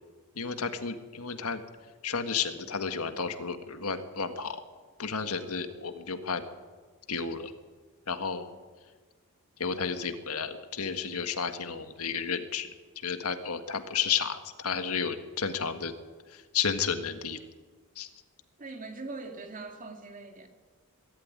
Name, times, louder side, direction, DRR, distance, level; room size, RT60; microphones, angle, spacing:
voice 1, 0.4-1.6 2.0-4.6 5.0-6.4 7.1-7.5 8.1-8.5 9.6-15.9 16.3-17.4 17.9-18.1, left 6 dB, 75° left, 8 dB, 1.7 m, -32 dB
voice 2, 18.6-20.5, right 3 dB, 35° right, 4 dB, 2.5 m, -42 dB
22.5 x 13.0 x 9.6 m, 1.4 s
head